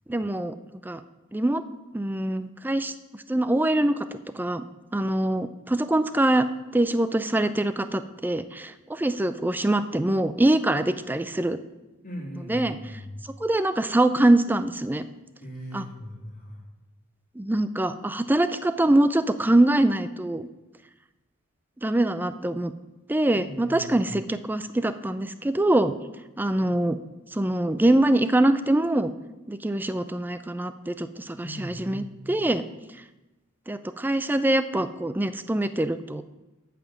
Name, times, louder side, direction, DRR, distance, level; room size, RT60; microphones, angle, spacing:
voice 1, 0.1-0.5 0.8-1.0 1.3-1.6 1.9-2.9 3.3-3.9 4.4-4.6 4.9-6.5 6.7-11.6 12.5-12.8 13.4-15.1 15.7-15.8 17.4-20.5 21.8-22.7 23.1-25.9 26.4-27.0 27.3-29.1 29.5-32.6 33.7-36.2, right 1 dB, 10° right, 12 dB, 0.4 m, -24 dB
voice 2, 12.0-13.2 15.4-16.6 23.3-24.1 31.4-32.4, equal, 40° left, -2 dB, 2.8 m, -39 dB
8.8 x 5.9 x 7.4 m, 1.1 s
head